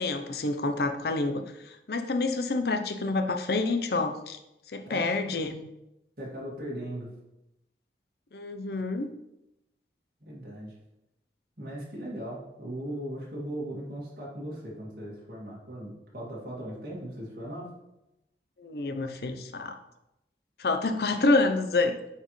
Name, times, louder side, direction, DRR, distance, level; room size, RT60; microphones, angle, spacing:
voice 1, 0.0-4.4 4.7-5.7 8.3-9.1 18.6-19.8 20.6-22.0, left 3 dB, 60° left, 7 dB, 0.6 m, -28 dB
voice 2, 6.2-7.1 10.2-10.8 11.6-17.7, right 1 dB, 55° right, -5 dB, 2.1 m, -38 dB
8.9 x 4.5 x 3.1 m, 0.89 s
head